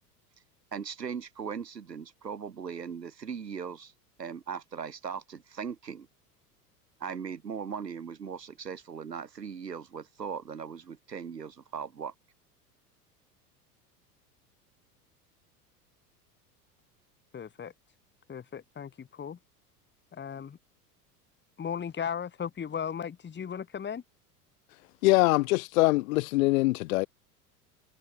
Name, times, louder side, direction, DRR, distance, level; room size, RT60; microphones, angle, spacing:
voice 1, 0.7-3.9 4.2-6.1 7.0-12.1, right 6 dB, 90° right, 1.4 m, -39 dB
voice 2, 17.3-17.7 18.3-19.4 20.1-20.6 21.6-24.0, left 7 dB, 20° left, 2.7 m, -36 dB
voice 3, 24.7-27.1, left 21 dB, 60° left, 0.9 m, -24 dB
figure-of-eight pair, 80°, 48 cm